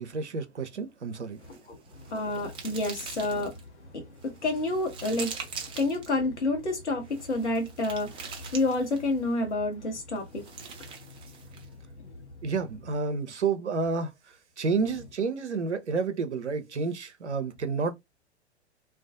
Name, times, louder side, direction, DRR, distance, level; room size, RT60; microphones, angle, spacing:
voice 1, 0.0-1.4 12.4-14.1 14.6-17.9, right 4 dB, 90° right, 0.5 m, -30 dB
sound 1, 1.4-3.6 4.2-6.1 7.0-9.2 10.2-11.7, right 6 dB, 15° right, 0.5 m, -43 dB
voice 2, 1.5-10.5 10.8-11.3 11.6-11.7 12.0-12.3, left 2 dB, 80° left, 0.9 m, -30 dB
2.4 x 2.2 x 2.5 m
figure-of-eight pair, 100°, 34 cm